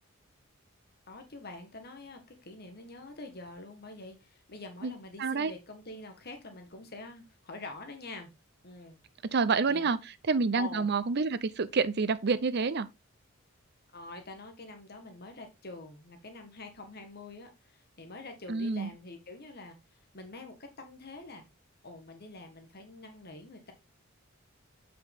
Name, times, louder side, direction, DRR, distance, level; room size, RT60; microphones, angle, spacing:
voice 1, 1.1-8.3 8.6-9.0 9.7-10.0 10.5-10.9 13.9-19.7 20.1-21.4 21.8-23.7, left 2 dB, 50° left, 1.6 m, -46 dB
voice 2, 5.2-5.5 9.2-12.9 18.5-18.9, right 4 dB, 55° right, 0.6 m, -28 dB
7.7 x 5.8 x 3.5 m
head